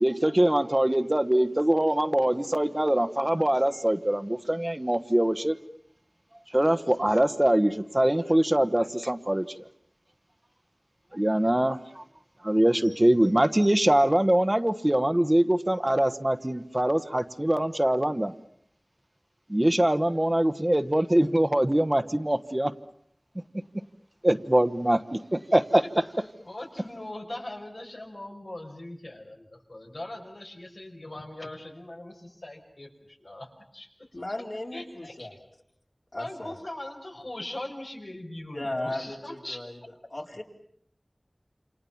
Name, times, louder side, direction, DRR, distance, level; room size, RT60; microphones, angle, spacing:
voice 1, 0.0-5.5 6.5-9.5 11.1-12.0 12.4-18.3 19.5-22.7 24.2-25.8, right 1 dB, 30° right, 10 dB, 1.2 m, -23 dB
voice 2, 26.4-33.9 34.7-35.3 36.1-39.6, left 1 dB, 80° left, 1 dB, 5.9 m, -40 dB
voice 3, 34.1-35.3 36.1-36.5 38.5-39.8 40.1-40.4, left 1 dB, 60° left, 1 dB, 4.1 m, -35 dB
28.5 x 28.0 x 7.2 m, 0.68 s
wide cardioid pair, 45°, 0 cm